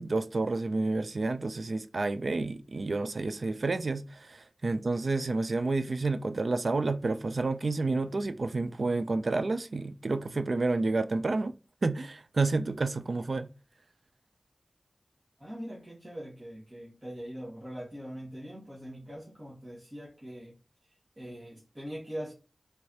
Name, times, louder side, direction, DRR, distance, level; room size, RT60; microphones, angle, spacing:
voice 1, 0.0-11.5 11.8-13.5, right 3 dB, 80° right, 0.3 m, -30 dB
voice 2, 15.4-20.5 20.8-22.3, equal, 35° right, 1.4 m, -42 dB
4.7 x 3.3 x 2.8 m
wide cardioid pair, 50°, 0 cm